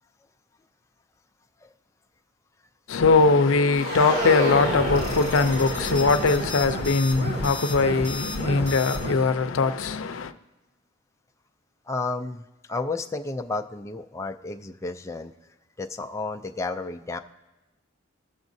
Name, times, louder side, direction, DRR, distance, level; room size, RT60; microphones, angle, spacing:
voice 1, 2.9-10.3, left 4 dB, 85° left, 0.5 m, -21 dB
sound 1, 3.7-9.2, equal, 75° right, 3.6 m, -30 dB
voice 2, 11.9-15.3 15.8-17.2, left 3 dB, 15° left, 0.4 m, -32 dB
21.0 x 7.2 x 2.6 m
head